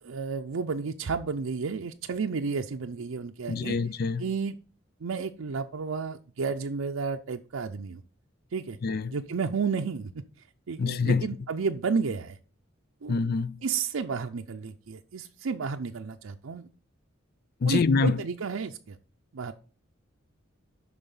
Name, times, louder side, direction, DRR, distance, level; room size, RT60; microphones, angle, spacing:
voice 1, 0.0-3.8 4.2-4.5 5.0-8.0 8.5-8.8 9.1-10.2 10.7-12.4 13.0-13.1 13.6-16.7 17.6-19.0 19.3-19.5, right 5 dB, 85° right, 0.5 m, -32 dB
voice 2, 3.5-4.3 8.8-9.1 10.8-11.3 13.1-13.6 17.6-18.2, left 4 dB, 50° left, 0.4 m, -26 dB
11.0 x 4.1 x 5.5 m
head